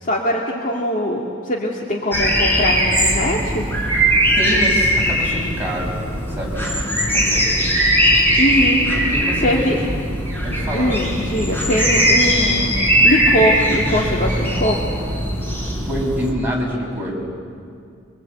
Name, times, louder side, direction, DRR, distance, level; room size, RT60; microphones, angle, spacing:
voice 1, 0.0-3.7 8.4-8.9 9.4-9.8 10.7-14.8, equal, 45° left, -2 dB, 2.3 m, -21 dB
sound 1, 2.1-16.3, equal, 10° left, 4.0 m, -19 dB
voice 2, 4.3-5.9 6.3-7.6 9.1-9.8 10.4-10.9 15.9-17.3, equal, 10° right, -3 dB, 6.0 m, -26 dB
25.0 x 24.0 x 8.3 m, 2.3 s
head